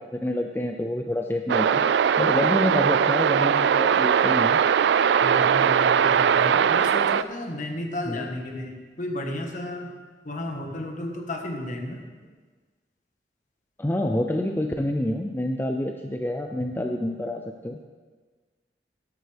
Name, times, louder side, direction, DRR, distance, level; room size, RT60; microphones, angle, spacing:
voice 1, 0.0-1.8 2.2-4.6 8.1-8.2 13.8-17.8, left 1 dB, 10° left, 3 dB, 0.5 m, -27 dB
sound 1, 1.5-7.2, right 7 dB, 70° right, 0.3 m, -20 dB
voice 2, 5.2-9.9 10.2-12.0, left 1 dB, 45° left, 2 dB, 1.5 m, -33 dB
12.5 x 12.5 x 3.5 m, 1.4 s
head